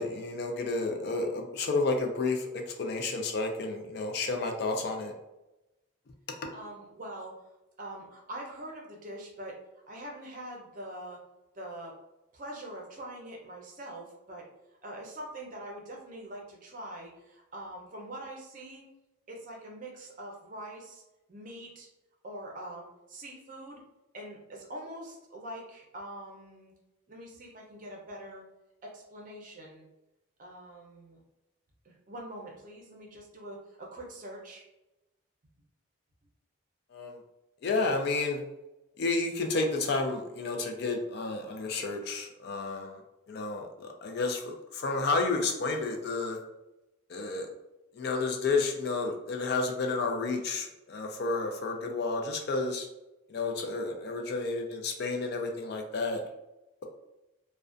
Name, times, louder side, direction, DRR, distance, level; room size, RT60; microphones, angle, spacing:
voice 1, 0.0-5.1 6.4-6.5 36.9-37.1 37.6-38.4 39.0-43.0 43.3-46.4 47.1-47.5 48.0-52.9 53.3-56.2, left 3 dB, 50° left, 3 dB, 0.3 m, -31 dB
voice 2, 6.5-7.4 7.8-9.6 9.9-11.2 11.5-11.9 12.3-14.4 14.8-18.8 19.3-21.0 21.3-21.9 22.2-23.8 24.1-26.7 27.1-28.4 28.8-29.8 30.4-31.2 31.8-34.7, right 1 dB, 40° right, -1 dB, 0.5 m, -44 dB
2.4 x 2.1 x 2.4 m, 0.96 s
head